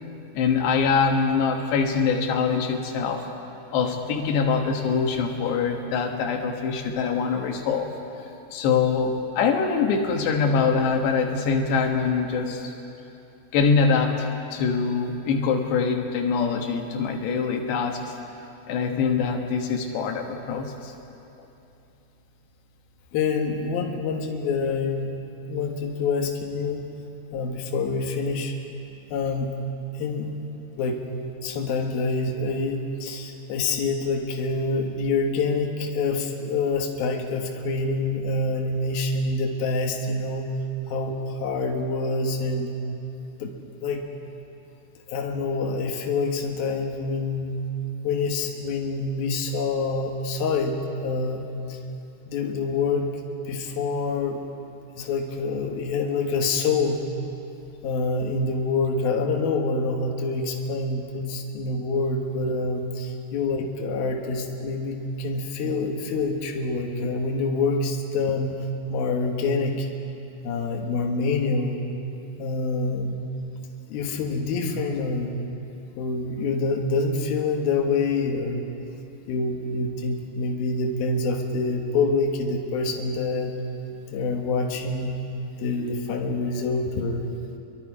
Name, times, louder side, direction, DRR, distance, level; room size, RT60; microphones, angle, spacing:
voice 1, 0.4-3.3 3.7-7.9 8.5-12.7 13.5-18.1 18.7-20.9, left 5 dB, 85° left, 2 dB, 3.7 m, -24 dB
voice 2, 23.1-25.1 25.5-27.0 27.3-28.5 29.1-29.5 29.9-30.4 30.8-31.1 31.4-40.5 40.9-42.8 43.4-43.6 43.8-44.1 45.1-47.6 48.0-51.4 51.7-51.8 52.2-53.2 53.5-54.4 55.0-57.1 57.8-68.6 68.9-69.9 70.4-71.8 72.4-73.2 73.9-75.4 76.0-78.7 79.3-83.6 84.1-85.2 85.6-87.3, left 3 dB, 65° left, 1 dB, 3.2 m, -26 dB
28.0 x 23.0 x 4.9 m, 2.8 s
omnidirectional pair, 4.8 m